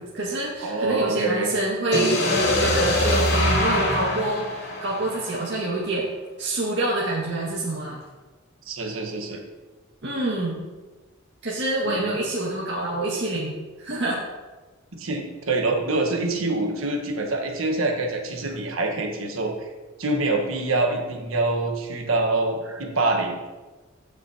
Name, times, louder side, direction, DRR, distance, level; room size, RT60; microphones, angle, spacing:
voice 1, 0.0-2.2 2.6-6.1 6.4-8.0 10.0-10.7 11.4-13.5 13.8-14.2, right 2 dB, 60° right, -6 dB, 1.8 m, -26 dB
voice 2, 0.6-1.5 2.4-2.5 8.7-9.4 11.8-12.2 15.0-19.7 20.0-23.4, right 2 dB, 80° right, 2 dB, 1.3 m, -25 dB
sound 1, 1.9-5.8, left 1 dB, 55° left, 2.6 m, -23 dB
15.0 x 6.1 x 2.8 m, 1.2 s
head